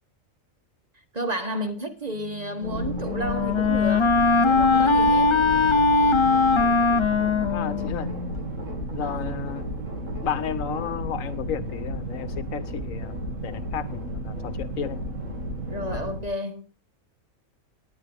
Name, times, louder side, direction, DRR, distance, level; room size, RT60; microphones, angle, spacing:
voice 1, 1.1-4.1 4.4-5.3 9.0-9.3 15.7-16.6, right 1 dB, 30° right, 1.3 m, -31 dB
Wind instrument woodwind instrument, 2.6-8.4, left 4 dB, 40° left, 0.4 m, -21 dB
sound 1, 2.6-16.2, right 1 dB, 65° right, 2.6 m, -33 dB
voice 2, 7.5-8.1 8.9-9.7 10.2-13.2 13.4-15.0 15.9-16.0, left 8 dB, 75° left, 1.2 m, -32 dB
18.5 x 9.6 x 3.5 m
omnidirectional pair, 1.4 m